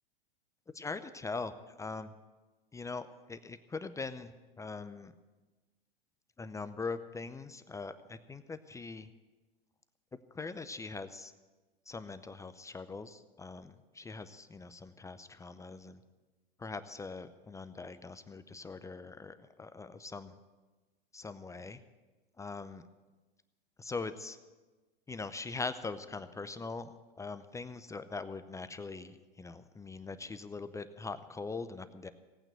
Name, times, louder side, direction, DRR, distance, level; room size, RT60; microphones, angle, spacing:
voice 1, 0.7-1.5 1.8-2.1 2.7-5.1 6.4-9.1 10.3-11.3 11.9-16.0 16.6-20.3 21.1-21.8 22.4-22.9 23.8-24.4 25.1-26.9 27.2-32.1, left 4 dB, 10° left, 11 dB, 0.6 m, -42 dB
18.0 x 8.9 x 7.9 m, 1.2 s
hypercardioid pair, 100°, 29 cm